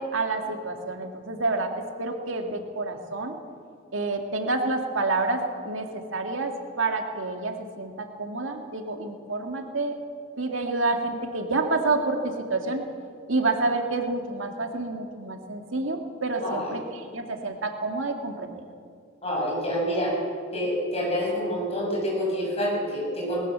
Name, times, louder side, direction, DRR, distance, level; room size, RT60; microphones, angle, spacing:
voice 1, 0.0-3.4 3.9-9.9 10.4-12.8 13.3-18.6, right 3 dB, 85° right, 4 dB, 2.1 m, -28 dB
voice 2, 16.4-16.8 19.2-20.2 20.5-23.4, equal, 30° left, -3 dB, 7.2 m, -27 dB
19.5 x 18.5 x 7.5 m, 2.3 s
head